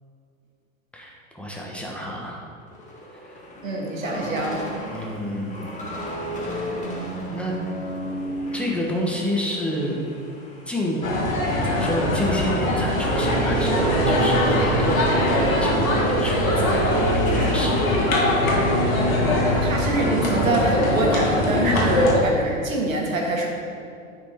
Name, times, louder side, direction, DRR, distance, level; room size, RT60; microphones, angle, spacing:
voice 1, 0.9-2.4 3.2-3.4 4.9-5.7 7.3-7.5 8.5-10.0 10.7-11.0 11.5-18.6 21.8-21.9, equal, 5° left, -3 dB, 1.2 m, -29 dB
sound 1, 2.7-11.1 11.4-18.3, right 1 dB, 20° left, 1.6 m, -34 dB
voice 2, 3.6-4.6 19.6-23.5, right 1 dB, 80° right, 0 dB, 1.5 m, -23 dB
sound 2, 11.0-22.2, left 2 dB, 85° left, 1.8 m, -22 dB
sound 3, 13.1-20.5, right 4 dB, 45° right, 0.8 m, -27 dB
9.9 x 4.5 x 4.4 m, 2.4 s
figure-of-eight pair, 90°, 40 cm